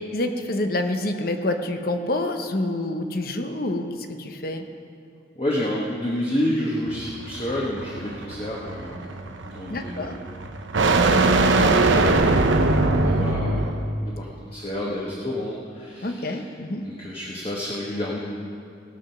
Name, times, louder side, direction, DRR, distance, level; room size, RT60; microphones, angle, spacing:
voice 1, 0.1-4.6 9.7-10.2 16.0-16.8, left 1 dB, 50° left, 6 dB, 0.9 m, -27 dB
voice 2, 5.3-9.1 9.4-10.1 10.7-12.5 12.8-16.6 16.8-18.2, left 1 dB, 30° left, -4 dB, 1.2 m, -30 dB
sound 1, 6.9-13.9, right 2 dB, 80° right, 0.8 m, -21 dB
18.0 x 7.5 x 5.8 m, 2.5 s
head